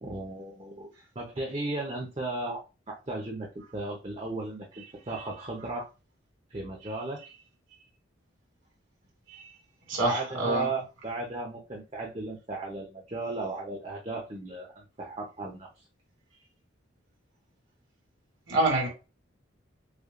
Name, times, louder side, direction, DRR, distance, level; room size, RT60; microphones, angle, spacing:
voice 1, 0.0-5.9 6.5-7.2 10.0-15.8, right 2 dB, 30° right, 0.7 m, -35 dB
voice 2, 9.9-10.7 18.5-18.9, right 1 dB, 80° right, 2.2 m, -26 dB
6.5 x 2.3 x 2.5 m
head